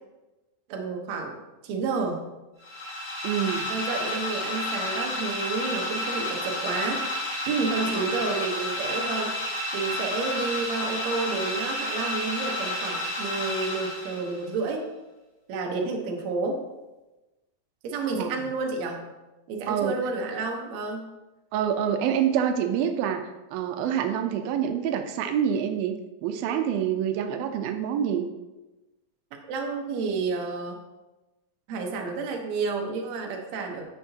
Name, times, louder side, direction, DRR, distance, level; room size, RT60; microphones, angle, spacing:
voice 1, 0.7-1.4 1.6-2.3 3.7-7.0 7.5-14.8 15.5-16.6 17.8-19.1 19.5-21.1 29.5-30.8 31.7-33.9, right 4 dB, 65° right, 1 dB, 2.0 m, -30 dB
sound 1, 2.6-14.5, left 1 dB, 45° left, 4.1 m, -31 dB
voice 2, 3.2-3.7 7.9-8.0 18.2-18.4 19.7-19.9 21.5-25.9 26.2-28.3, right 9 dB, 90° right, 6 dB, 2.5 m, -26 dB
9.8 x 7.9 x 2.8 m, 1.1 s
omnidirectional pair, 4.1 m